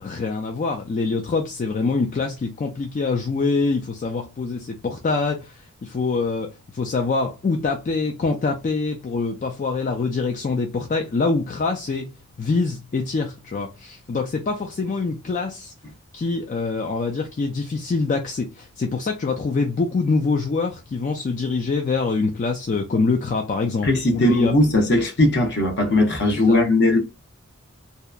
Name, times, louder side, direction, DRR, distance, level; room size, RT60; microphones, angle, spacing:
voice 1, 0.0-15.7 16.1-24.5 26.3-26.6, left 4 dB, 35° left, 0.3 m, -25 dB
voice 2, 23.8-27.0, left 2 dB, 50° left, 0.7 m, -18 dB
2.8 x 2.1 x 2.3 m
head